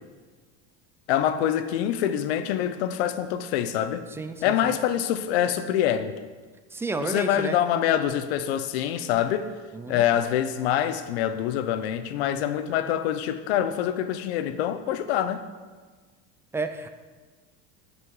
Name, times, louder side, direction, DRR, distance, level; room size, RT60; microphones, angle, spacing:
voice 1, 1.1-4.0 4.4-6.2 7.0-9.5 9.9-15.4, left 10 dB, 90° left, 0.7 m, -25 dB
voice 2, 4.1-4.8 6.7-7.6 9.7-10.0 16.5-16.9, right 3 dB, 10° right, 0.3 m, -32 dB
9.6 x 5.7 x 4.7 m
supercardioid pair, 140°, 31 cm